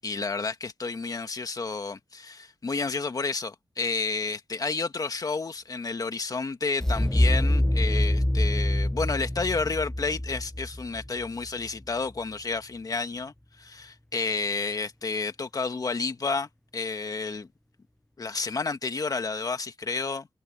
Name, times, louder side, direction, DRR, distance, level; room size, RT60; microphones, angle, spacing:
voice 1, 0.0-17.5 18.2-20.3, left 4 dB, 45° left, 1.6 m, -31 dB
sound 1, 6.8-11.7, left 1 dB, 5° left, 0.4 m, -25 dB
wide cardioid pair, 105°, 9 cm